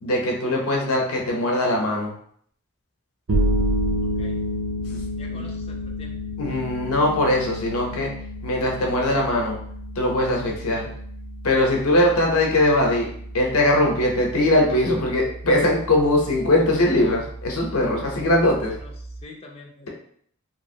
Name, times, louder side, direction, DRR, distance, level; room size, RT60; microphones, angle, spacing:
voice 1, 0.0-2.1 4.9-5.4 6.4-8.1 8.4-9.5 10.0-10.9 11.4-13.1 13.3-18.7, left 1 dB, 75° left, 0 dB, 0.7 m, -21 dB
sound 1, 3.3-19.2, equal, 65° right, 0.6 m, -30 dB
voice 2, 4.0-4.4 5.2-6.2 18.6-19.9, left 2 dB, 25° left, 0 dB, 0.4 m, -45 dB
3.0 x 2.5 x 2.7 m, 0.63 s
head